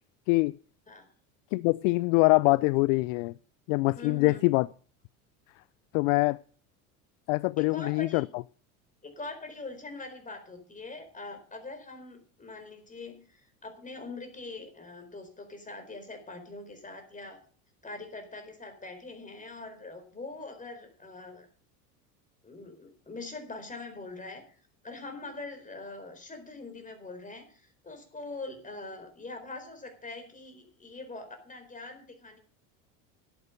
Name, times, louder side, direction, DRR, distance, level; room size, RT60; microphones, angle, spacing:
voice 1, 1.5-3.3 3.7-4.7 5.9-6.4 7.3-8.2, left 25 dB, 60° left, 0.5 m, -24 dB
voice 2, 4.0-4.4 7.6-8.2 9.0-17.4 17.8-21.5 22.4-24.6 24.8-32.4, left 3 dB, 15° left, 4.3 m, -43 dB
11.0 x 9.0 x 6.7 m
hypercardioid pair, 90°, 44 cm